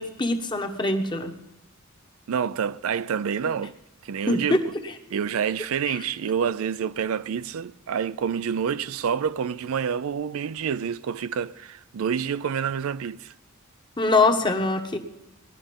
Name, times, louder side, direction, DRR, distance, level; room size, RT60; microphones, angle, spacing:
voice 1, 0.0-1.3 4.3-4.6 5.9-6.0 14.0-15.0, left 2 dB, 20° left, 1.1 m, -23 dB
voice 2, 2.3-3.8 4.0-4.6 5.1-13.3, right 7 dB, 75° right, 0.4 m, -28 dB
19.0 x 11.0 x 5.2 m
head